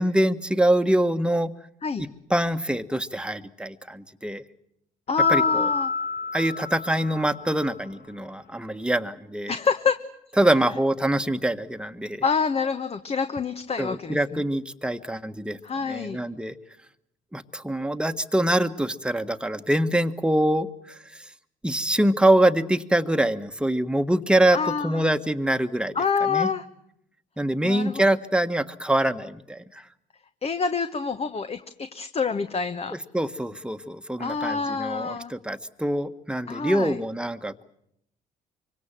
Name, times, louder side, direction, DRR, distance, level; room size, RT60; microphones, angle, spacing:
voice 1, 0.0-1.5 2.3-4.4 5.3-5.7 6.3-9.5 10.4-12.2 13.8-15.6 15.9-16.6 17.3-21.3 21.6-25.9 26.3-26.5 27.4-29.8 32.9-37.6, right 1 dB, 5° right, 9 dB, 1.5 m, -24 dB
voice 2, 5.1-5.9 9.5-10.0 12.2-14.4 15.6-16.2 24.5-25.0 25.9-26.6 27.6-28.0 30.4-33.0 34.2-35.3 36.5-37.0, left 5 dB, 30° left, 9 dB, 1.2 m, -27 dB
sound 1, 5.2-7.7, left 4 dB, 55° left, 1.9 m, -27 dB
25.0 x 24.5 x 7.6 m, 0.77 s
hypercardioid pair, 50°, 19 cm